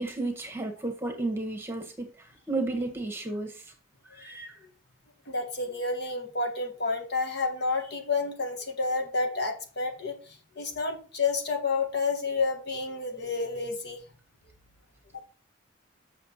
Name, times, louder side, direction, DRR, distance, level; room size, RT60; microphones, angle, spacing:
voice 1, 0.0-3.7 4.0-4.6, right 2 dB, 10° right, 3 dB, 1.6 m, -33 dB
voice 2, 5.3-14.0 15.1-15.2, left 3 dB, 55° left, 4 dB, 1.7 m, -30 dB
7.7 x 6.5 x 4.3 m, 0.37 s
head